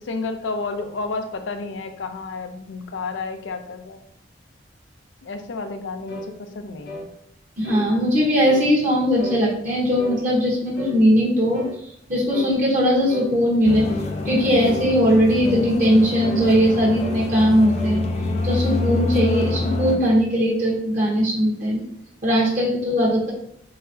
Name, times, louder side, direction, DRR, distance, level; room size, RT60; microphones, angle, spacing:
voice 1, 0.1-4.0 5.2-7.1, left 3 dB, 85° left, 7 dB, 0.5 m, -31 dB
sound 1, 6.1-6.3 6.8-7.1 7.6-7.9 8.4-8.7 9.2-9.4 10.0-10.2 10.7-11.0 11.5-11.8 12.3-12.5 13.1-13.3 13.9-14.1 14.6-14.9 15.4-15.7 16.2-16.5 17.0-17.3 17.6-18.0, left 1 dB, 70° left, 1.2 m, -35 dB
voice 2, 7.6-11.6 12.1-13.9 14.2-18.0 18.4-21.8 22.2-23.3, equal, 45° right, -4 dB, 1.0 m, -19 dB
sound 2, 13.6-20.0, left 2 dB, 35° left, 0.4 m, -26 dB
4.2 x 3.9 x 2.7 m, 0.69 s
head